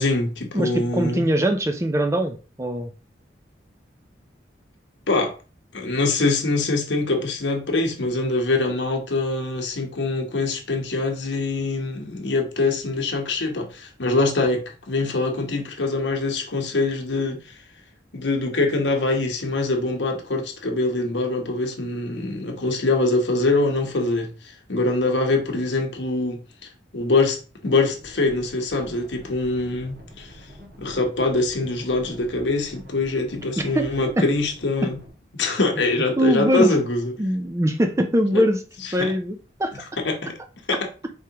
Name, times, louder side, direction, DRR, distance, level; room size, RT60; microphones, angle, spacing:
voice 1, 0.0-1.3 5.1-5.3 5.7-17.6 18.1-30.4 30.8-35.0 35.3-37.1 38.3-38.4 38.8-39.1 40.0-40.3 40.7-40.8, left 2 dB, 75° left, 1.0 m, -24 dB
voice 2, 0.5-2.9 33.6-34.3 34.8-34.9 36.2-36.7 37.2-38.6 38.9-39.8, equal, 15° right, 0.4 m, -22 dB
sound 1, 27.7-35.1, equal, 55° right, 1.6 m, -46 dB
4.7 x 3.6 x 2.9 m
head